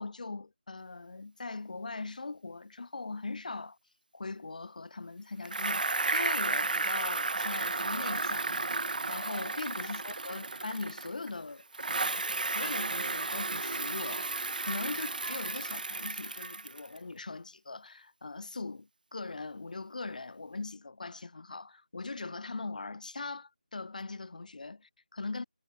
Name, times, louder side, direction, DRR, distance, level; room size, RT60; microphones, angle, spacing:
voice 1, 0.0-3.8 4.1-14.3 14.6-25.4, left 3 dB, 55° left, 1.0 m, -40 dB
Bicycle, 5.4-11.3 11.7-17.0, right 3 dB, 60° right, 1.0 m, -33 dB
figure-of-eight pair, 165°, 5 cm